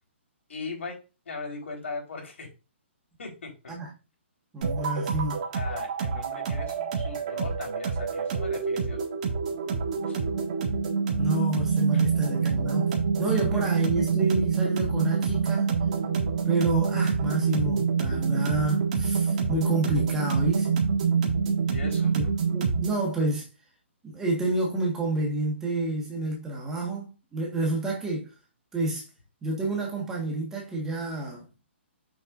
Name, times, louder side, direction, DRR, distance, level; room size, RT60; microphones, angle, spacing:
voice 1, 0.5-0.9 1.3-2.5 3.2-3.8 5.5-9.0 10.0-10.2 11.9-12.0 13.3-13.7 21.7-22.1, left 4 dB, 75° left, 4.1 m, -39 dB
voice 2, 4.5-5.4 11.2-12.9 13.2-15.7 16.4-20.7 22.1-23.5 24.0-28.3 28.7-29.1 29.4-31.4, right 2 dB, 5° right, 1.5 m, -29 dB
sound 1, 4.6-23.0, right 5 dB, 35° right, 1.9 m, -26 dB
7.8 x 6.5 x 2.6 m
hypercardioid pair, 170°, 7 cm